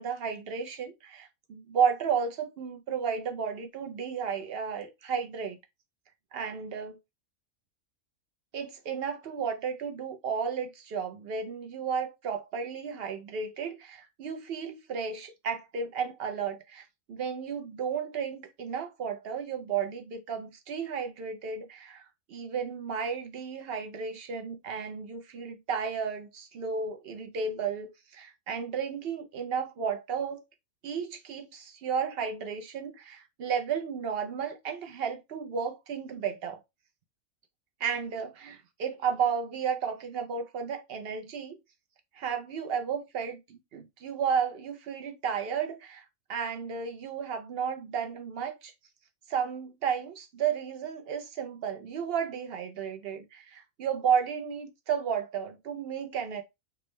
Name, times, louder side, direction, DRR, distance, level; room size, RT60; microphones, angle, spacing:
voice 1, 0.0-5.6 6.3-7.0 8.5-30.4 30.8-36.6 37.8-41.6 42.1-48.7 49.3-56.4, right 6 dB, 65° right, 0.6 m, -33 dB
3.5 x 2.1 x 3.0 m
omnidirectional pair, 1.4 m